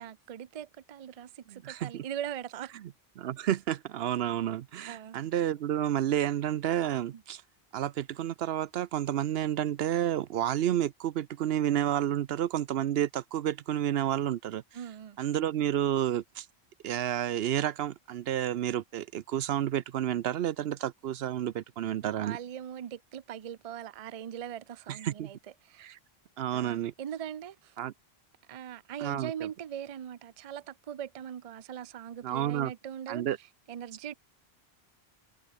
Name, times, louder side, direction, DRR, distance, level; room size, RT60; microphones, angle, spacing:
voice 1, 0.0-2.7 4.9-5.2 7.1-7.2 14.7-15.2 22.0-25.9 26.5-27.8 28.5-34.1, right 9 dB, 45° right, 0.5 m, -41 dB
voice 2, 1.5-2.0 3.2-7.4 7.7-14.6 15.2-16.5 16.8-22.4 24.9-25.3 25.8-26.0 26.4-26.9 27.8-27.9 29.0-29.3 32.2-32.7 33.1-33.4, right 11 dB, 75° right, 0.8 m, -30 dB
omnidirectional pair, 1.1 m